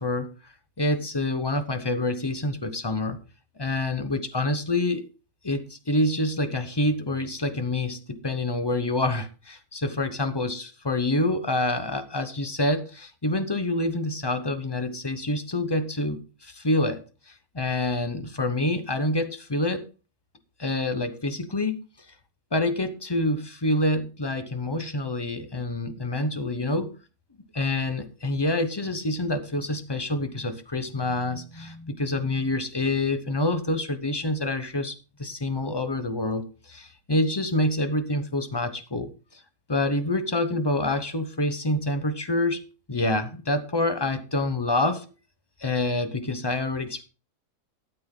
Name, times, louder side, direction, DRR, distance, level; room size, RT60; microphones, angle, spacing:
voice 1, 0.0-3.2 3.6-5.1 5.4-19.9 20.6-22.1 22.5-26.9 27.5-39.4 39.7-45.0 45.6-47.0, left 2 dB, 20° left, 10 dB, 0.8 m, -27 dB
13.0 x 8.2 x 3.7 m, 0.34 s
omnidirectional pair, 1.4 m